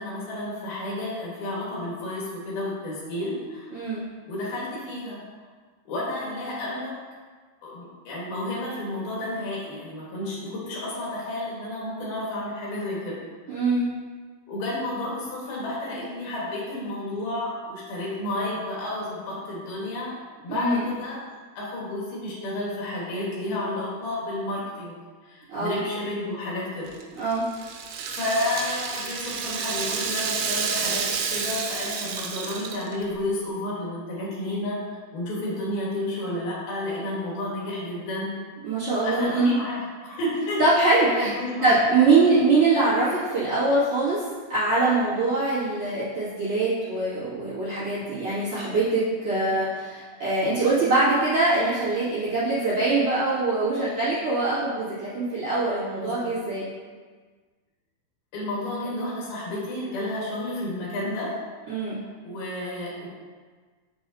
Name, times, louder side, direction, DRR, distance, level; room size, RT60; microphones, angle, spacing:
voice 1, 0.0-4.0 4.3-5.2 5.9-7.0 7.6-13.2 14.5-20.2 20.4-21.2 21.6-27.0 28.1-38.4 39.0-40.6 41.1-41.8 56.0-56.3 58.3-61.4 62.2-63.1, left 1 dB, 60° left, -6 dB, 3.0 m, -31 dB
voice 2, 3.7-4.0 13.5-13.9 20.5-20.8 25.5-25.8 27.2-27.4 38.6-39.6 40.6-41.3 41.6-44.2 44.5-56.7 61.7-62.0, right 3 dB, 40° right, -11 dB, 2.3 m, -23 dB
Rattle (instrument), 26.9-33.1, right 6 dB, 85° right, 3.3 m, -30 dB
7.3 x 7.1 x 2.8 m, 1.5 s
omnidirectional pair, 5.6 m